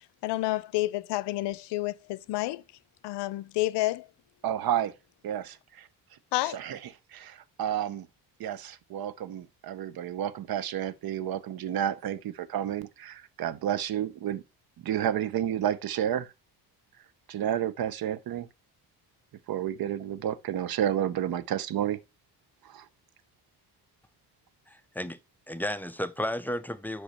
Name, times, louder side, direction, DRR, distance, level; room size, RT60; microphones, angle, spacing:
voice 1, 0.2-2.6 3.0-4.1 6.3-6.6, left 18 dB, 85° left, 0.5 m, -29 dB
voice 2, 4.4-4.9 5.2-5.9 6.5-6.8 7.1-8.1 8.4-14.4 14.8-16.3 17.3-18.5 19.5-22.0 22.6-22.9, right 10 dB, 60° right, 0.7 m, -31 dB
voice 3, 24.7-25.2 25.5-27.0, left 1 dB, 5° left, 0.4 m, -33 dB
6.1 x 5.1 x 4.1 m
cardioid pair, 100°, 41 cm